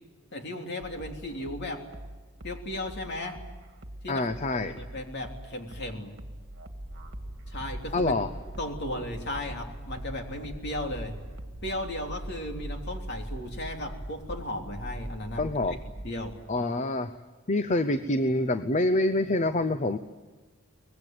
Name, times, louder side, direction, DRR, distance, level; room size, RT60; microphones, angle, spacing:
voice 1, 0.3-1.8 2.4-3.4 4.0-4.3 4.5-6.1 7.5-8.2 8.6-11.1 11.6-15.4 16.0-16.4, left 1 dB, 50° left, 3 dB, 3.2 m, -35 dB
sound 1, 0.8-11.8, right 1 dB, 55° right, 1.9 m, -45 dB
voice 2, 4.1-4.8 7.9-8.3 15.4-15.8 16.5-17.2 17.5-20.0, left 2 dB, 35° left, 11 dB, 0.7 m, -26 dB
sound 2, 6.8-16.3, right 1 dB, 15° left, 4.2 m, -41 dB
24.5 x 21.0 x 9.3 m, 1.3 s
head